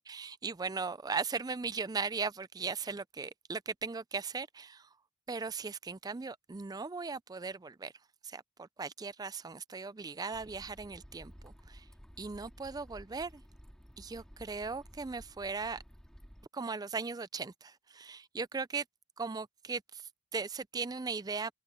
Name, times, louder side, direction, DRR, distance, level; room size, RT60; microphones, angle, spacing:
voice 1, 0.0-4.9 5.3-7.9 8.2-11.9 12.2-13.4 14.0-15.8 16.5-18.8 19.2-21.5, right 4 dB, 20° right, 0.4 m, -38 dB
sound 1, 10.3-16.5, equal, 5° left, 2.0 m, -54 dB
head